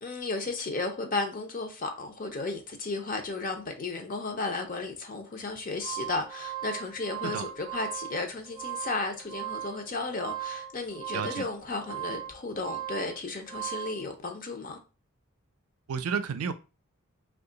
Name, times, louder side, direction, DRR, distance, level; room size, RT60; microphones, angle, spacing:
voice 1, 0.0-14.8, left 3 dB, 40° left, 0.5 m, -34 dB
sound 1, 5.5-14.0, right 11 dB, 20° right, 0.5 m, -38 dB
voice 2, 11.1-11.4 15.9-16.5, right 6 dB, 85° right, 0.4 m, -31 dB
2.8 x 2.3 x 3.8 m
head